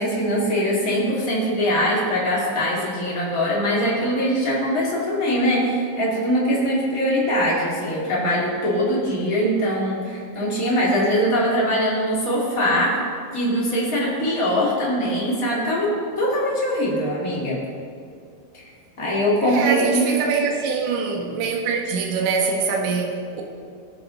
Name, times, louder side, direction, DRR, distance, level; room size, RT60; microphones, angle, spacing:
voice 1, 0.0-13.0 13.3-15.9 16.2-17.6 18.5-18.7 19.0-20.1, equal, 25° left, -6 dB, 2.1 m, -22 dB
voice 2, 19.4-23.1 23.3-23.4, right 5 dB, 75° right, 1 dB, 3.5 m, -23 dB
20.0 x 7.1 x 4.1 m, 2.4 s
omnidirectional pair, 5.3 m